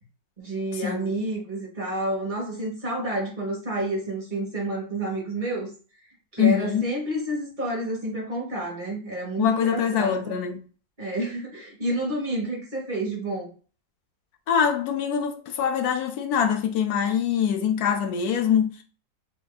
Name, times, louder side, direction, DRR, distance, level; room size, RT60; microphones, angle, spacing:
voice 1, 0.4-5.7 6.3-10.3 11.0-13.5, right 1 dB, 30° right, 1.3 m, -29 dB
voice 2, 6.4-6.8 9.4-10.6 14.5-18.8, left 8 dB, 70° left, 0.9 m, -24 dB
5.8 x 2.7 x 2.3 m
omnidirectional pair, 2.0 m